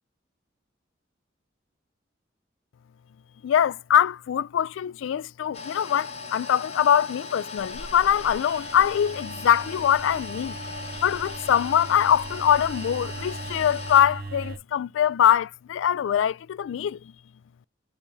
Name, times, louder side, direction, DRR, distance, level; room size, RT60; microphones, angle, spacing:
voice 1, 3.4-10.6 11.0-17.1, left 9 dB, 80° left, 0.3 m, -23 dB
sound 1, 5.5-14.0, left 4 dB, 35° left, 0.9 m, -38 dB
sound 2, 7.6-14.6, right 3 dB, 55° right, 0.8 m, -39 dB
5.3 x 3.3 x 2.7 m
head